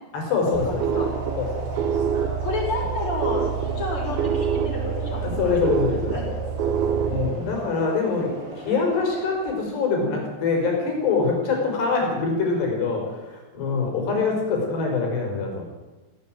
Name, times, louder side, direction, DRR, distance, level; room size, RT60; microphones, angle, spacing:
voice 1, 0.1-1.1 1.4-1.9 5.2-6.3 7.1-15.6, left 4 dB, 85° left, 2 dB, 7.3 m, -24 dB
sound 1, 0.5-7.3, right 7 dB, 75° right, 2.7 m, -26 dB
sound 2, 0.6-9.5, right 2 dB, 35° right, 3.8 m, -36 dB
voice 2, 2.4-3.5 3.8-5.7 6.1-6.2 8.7-9.1, left 2 dB, 30° left, -2 dB, 7.1 m, -30 dB
17.0 x 17.0 x 9.1 m, 1.1 s
omnidirectional pair, 4.7 m